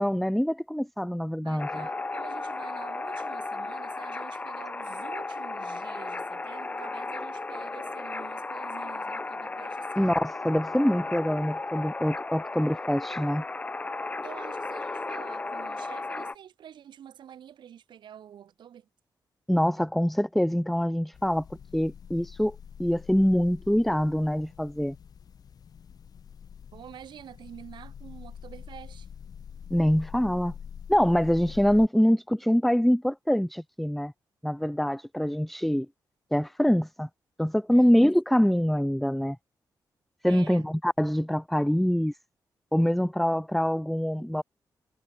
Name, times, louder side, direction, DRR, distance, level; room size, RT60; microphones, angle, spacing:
voice 1, 0.0-1.9 10.0-13.4 19.5-21.4 21.7-24.9 29.7-30.5 30.9-34.1 34.4-35.9 36.3-37.1 37.4-39.4 40.2-42.2 42.7-44.4, equal, ahead, 1.2 m, -24 dB
voice 2, 1.4-10.2 14.2-18.9 26.7-29.1 37.7-38.1 40.2-40.7, right 9 dB, 85° right, 6.7 m, -47 dB
sound 1, 1.6-16.3, left 3 dB, 20° left, 3.3 m, -35 dB
sound 2, 21.1-31.9, left 7 dB, 55° left, 4.5 m, -45 dB
wide cardioid pair, 170°, 8 cm